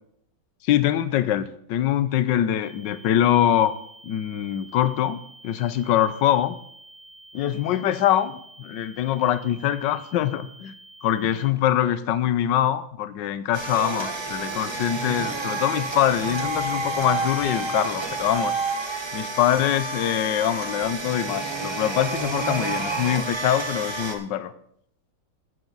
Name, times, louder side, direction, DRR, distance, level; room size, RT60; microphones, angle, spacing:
voice 1, 0.6-3.8 4.0-5.2 5.4-6.6 7.3-10.7 11.0-18.5 19.1-24.5, left 11 dB, 70° left, 14 dB, 1.3 m, -23 dB
sound 1, 2.6-11.5, right 2 dB, 25° left, 3.3 m, -49 dB
sound 2, 13.5-24.2, right 3 dB, 25° right, 0.6 m, -29 dB
14.5 x 9.3 x 4.0 m, 0.71 s
omnidirectional pair, 2.1 m